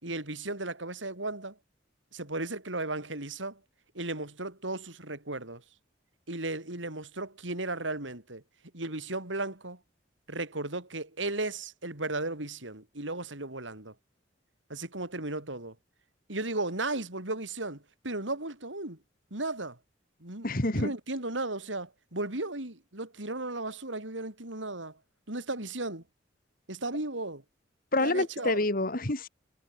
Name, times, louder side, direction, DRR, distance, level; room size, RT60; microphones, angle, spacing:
voice 1, 0.0-1.6 2.1-3.6 3.9-5.6 6.3-8.4 8.7-9.8 10.3-13.9 14.7-15.7 16.3-19.0 19.3-19.8 20.2-25.0 25.3-26.0 26.7-27.4 28.0-28.6, right 2 dB, 90° right, 5.4 m, -35 dB
voice 2, 20.4-20.9 27.9-29.3, left 2 dB, 50° left, 2.3 m, -27 dB
head